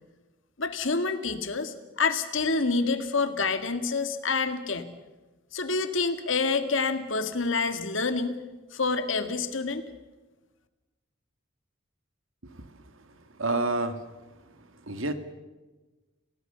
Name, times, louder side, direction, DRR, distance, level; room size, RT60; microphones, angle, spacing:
voice 1, 0.6-4.9 5.5-8.4 8.7-9.8, left 4 dB, 70° left, 9 dB, 2.0 m, -27 dB
voice 2, 13.4-14.0 14.9-15.1, right 2 dB, 80° right, 9 dB, 2.1 m, -28 dB
29.0 x 18.0 x 6.9 m, 1.2 s
head